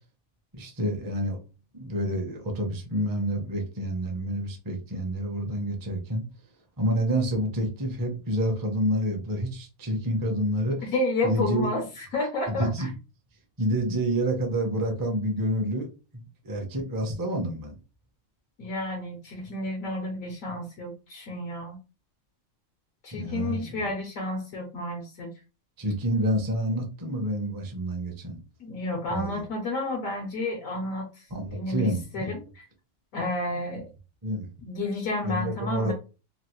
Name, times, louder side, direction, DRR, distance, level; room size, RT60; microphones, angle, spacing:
voice 1, 0.5-1.4 1.7-6.2 6.8-10.9 11.2-11.7 12.5-12.9 13.6-15.9 16.1-17.8 23.1-23.9 25.8-28.4 29.1-29.4 31.3-32.3 34.2-34.5 35.2-35.9, right 1 dB, 25° right, 2 dB, 0.5 m, -28 dB
voice 2, 10.9-12.9 18.6-21.8 23.0-25.3 28.6-31.2 31.5-31.9 32.1-32.6 33.1-33.9 34.6-35.9, left 2 dB, 75° left, 1 dB, 1.2 m, -31 dB
3.1 x 2.5 x 2.9 m, 0.32 s
omnidirectional pair, 1.5 m